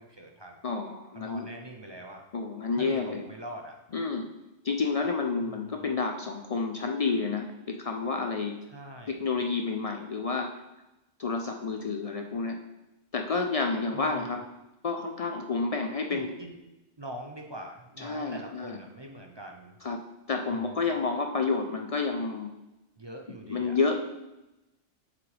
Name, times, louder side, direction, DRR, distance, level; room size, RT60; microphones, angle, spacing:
voice 1, 0.0-0.6 1.1-2.2 2.8-3.8 5.4-5.9 8.7-9.3 13.9-14.3 16.1-16.6 17.0-19.8 20.5-20.9 23.0-23.8, right 1 dB, 30° right, 2 dB, 0.5 m, -43 dB
voice 2, 0.6-1.5 2.3-3.2 3.9-4.3 4.6-8.6 9.1-10.6 11.2-12.6 13.1-14.5 14.8-16.3 18.0-18.8 19.8-22.5 23.5-24.1, left 4 dB, 65° left, 4 dB, 0.3 m, -30 dB
7.6 x 6.0 x 3.4 m, 0.97 s
omnidirectional pair, 1.3 m